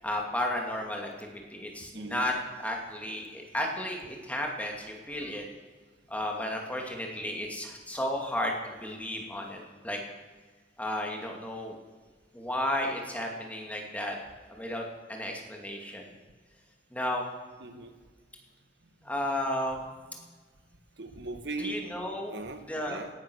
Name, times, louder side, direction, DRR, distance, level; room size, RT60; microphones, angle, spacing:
voice 1, 0.0-5.4 6.1-10.0 10.8-11.8 12.3-14.2 14.5-16.1 16.9-17.3 19.0-19.8 21.6-22.4 22.7-23.0, left 1 dB, 10° left, 1 dB, 2.6 m, -33 dB
voice 2, 1.9-2.3 17.6-18.0 21.0-21.9 22.3-23.1, right 2 dB, 65° right, 8 dB, 1.6 m, -39 dB
17.5 x 10.5 x 6.4 m, 1.4 s
head